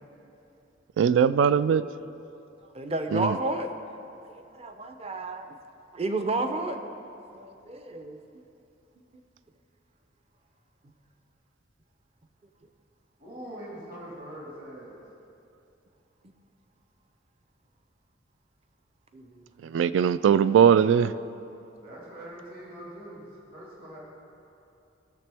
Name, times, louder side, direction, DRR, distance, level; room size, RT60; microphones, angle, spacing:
voice 1, 1.0-1.8 3.1-3.4 19.6-21.1, right 7 dB, 85° right, 16 dB, 0.3 m, -20 dB
voice 2, 2.7-3.7 4.2-5.5 5.9-6.8 7.3-8.2 19.1-19.7, right 2 dB, 35° right, 7 dB, 0.6 m, -31 dB
voice 3, 13.2-15.0 21.8-24.0, right 1 dB, 55° right, -5 dB, 2.0 m, -43 dB
17.0 x 6.8 x 3.4 m, 2.8 s
head